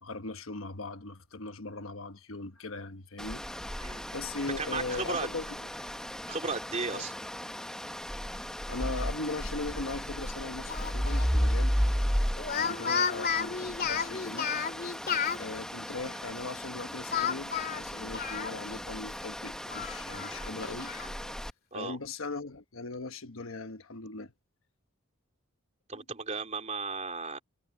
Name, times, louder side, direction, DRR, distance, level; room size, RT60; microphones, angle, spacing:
voice 1, 0.0-3.4 4.1-5.5 6.9-7.0 8.7-11.8 12.5-14.5 15.4-20.9 21.7-24.3 25.9-26.0, left 3 dB, 70° left, 1.3 m, -39 dB
sound 1, 3.2-21.5, equal, 5° left, 1.0 m, -34 dB
voice 2, 4.6-5.3 6.3-7.1 21.7-22.0 25.9-27.4, right 4 dB, 35° right, 3.2 m, -35 dB
Speech, 10.7-11.3 12.4-15.4 17.1-18.8 19.2-19.3 19.7-21.1, left 7 dB, 45° left, 2.3 m, -32 dB
head